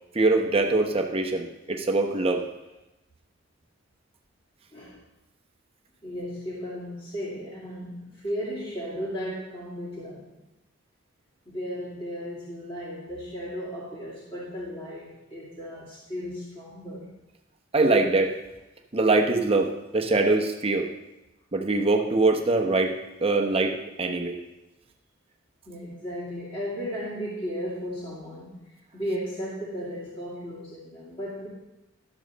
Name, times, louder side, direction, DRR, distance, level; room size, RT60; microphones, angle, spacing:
voice 1, 0.1-2.4 17.7-18.4 18.9-20.9 21.5-22.9 23.2-24.4, right 3 dB, 30° right, 3 dB, 0.9 m, -23 dB
voice 2, 4.7-5.0 6.0-10.4 11.5-17.1 25.7-31.5, equal, 25° left, -8 dB, 2.4 m, -35 dB
12.5 x 7.2 x 4.1 m, 0.95 s
head